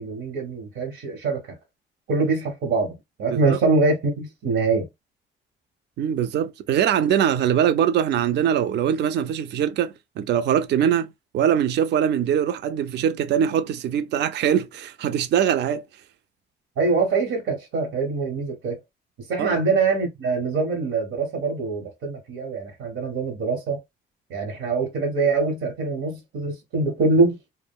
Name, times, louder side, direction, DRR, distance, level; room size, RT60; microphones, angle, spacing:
voice 1, 0.0-1.4 2.1-4.9 16.8-18.8 19.3-23.8 24.3-27.3, right 3 dB, 85° right, 0.9 m, -24 dB
voice 2, 6.0-15.8 19.4-19.6, right 9 dB, 60° right, 0.4 m, -22 dB
2.2 x 2.0 x 3.5 m
cardioid pair, 90°, 20 cm